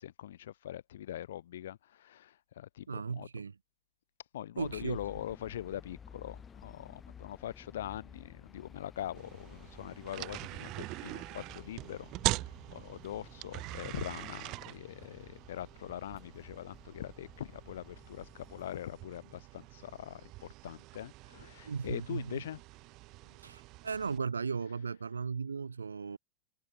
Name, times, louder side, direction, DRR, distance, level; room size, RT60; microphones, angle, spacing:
voice 1, 0.0-3.3 4.3-12.1 12.4-22.6, left 12 dB, 60° left, 2.4 m, -43 dB
voice 2, 2.9-3.5 4.6-5.0 21.6-22.4 23.4-26.2, right 5 dB, 75° right, 0.6 m, -36 dB
sound 1, 4.6-18.8, left 6 dB, 20° left, 1.3 m, -55 dB
sound 2, 9.1-24.2, right 21 dB, 40° right, 1.5 m, -43 dB
figure-of-eight pair, 90°, 0 cm